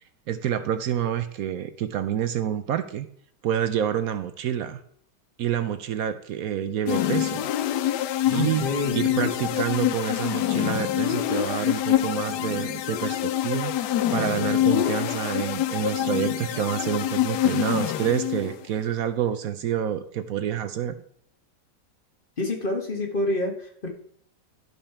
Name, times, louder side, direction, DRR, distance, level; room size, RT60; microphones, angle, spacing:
voice 1, 0.3-3.1 3.4-4.8 5.4-7.5 8.3-8.7 8.9-13.7 14.1-21.0, right 9 dB, 70° right, 11 dB, 0.9 m, -28 dB
sound 1, 6.9-18.6, left 12 dB, 80° left, 1.2 m, -26 dB
voice 2, 8.3-9.5 22.4-23.9, left 2 dB, 35° left, 3 dB, 1.4 m, -28 dB
12.0 x 5.4 x 4.3 m, 0.64 s
omnidirectional pair, 1.8 m